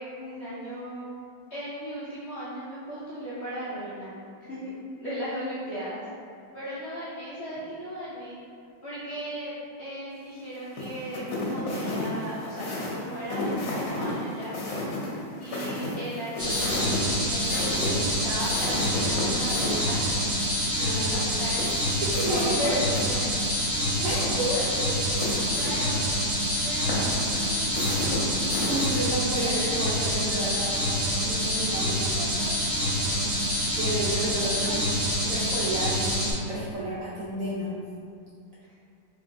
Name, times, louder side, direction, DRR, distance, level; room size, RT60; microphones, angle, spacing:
voice 1, 0.2-1.1 1.5-4.1 4.5-6.1 6.5-8.3 8.8-14.5 15.4-20.0 20.6-21.7 22.1-23.3 23.9-25.2 25.6-26.1 26.6-28.3 31.8-32.5 34.6-34.8, equal, 60° left, -11 dB, 0.7 m, -36 dB
sound 1, 10.7-19.9 21.2-23.0 23.3-23.4 24.1-25.7 26.9-29.0, left 1 dB, 75° left, 1.5 m, -33 dB
sound 2, 16.4-36.3, equal, 15° right, 0.5 m, -27 dB
voice 2, 20.8-21.4 22.0-22.8 24.0-24.2 28.6-32.0 33.8-34.8 35.3-37.7, right 1 dB, 65° right, -8 dB, 0.9 m, -31 dB
4.4 x 3.2 x 2.6 m, 2.3 s
omnidirectional pair, 2.0 m